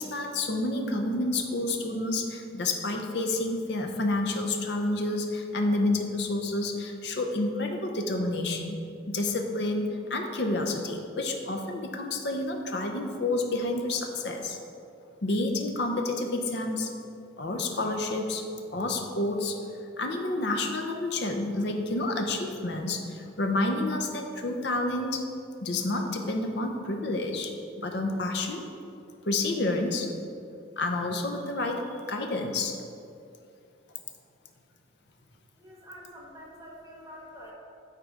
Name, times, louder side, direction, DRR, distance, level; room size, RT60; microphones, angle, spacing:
voice 1, 0.0-8.8 9.1-14.6 15.2-16.9 17.4-19.6 20.0-25.3 25.6-27.5 27.8-28.6 29.2-30.1 30.8-32.8, left 2 dB, 60° left, 3 dB, 0.7 m, -29 dB
voice 2, 35.6-37.5, equal, 15° right, -4 dB, 1.0 m, -46 dB
9.3 x 3.8 x 4.9 m, 2.6 s
head